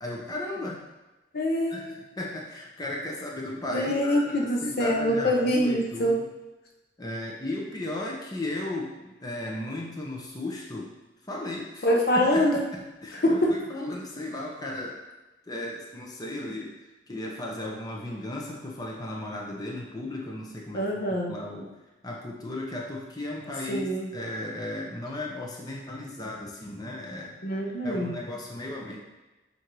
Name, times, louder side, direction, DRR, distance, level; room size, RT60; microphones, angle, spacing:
voice 1, 0.0-0.8 1.7-6.2 7.0-10.9 11.3-11.9 12.3-12.5 12.7-15.0 15.5-21.7 22.0-27.4 27.8-29.0, left 1 dB, 20° left, -2 dB, 0.8 m, -35 dB
voice 2, 1.3-1.9 3.7-6.2 11.8-12.6 13.1-13.5 20.7-21.4 23.7-24.1 27.4-28.1, equal, 55° left, 0 dB, 0.8 m, -25 dB
7.6 x 2.7 x 4.6 m, 1.1 s
head